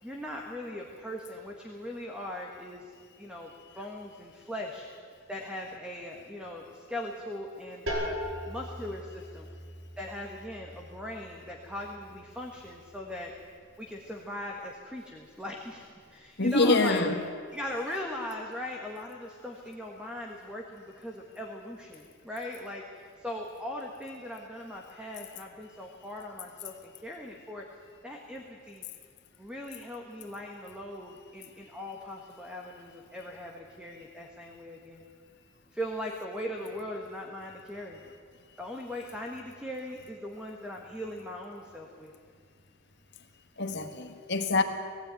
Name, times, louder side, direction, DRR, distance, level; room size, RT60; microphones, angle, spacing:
voice 1, 0.0-4.9 5.3-8.2 8.5-9.5 10.0-13.3 13.8-17.0 17.5-27.6 28.0-28.8 29.4-35.0 35.7-38.0 38.6-42.1, left 1 dB, 5° right, 0 dB, 1.5 m, -39 dB
sound 1, 7.9-13.4, equal, 70° right, 5.0 m, -40 dB
voice 2, 16.4-17.2 43.6-44.6, left 3 dB, 55° left, 5 dB, 1.6 m, -25 dB
19.5 x 15.5 x 9.1 m, 2.1 s
head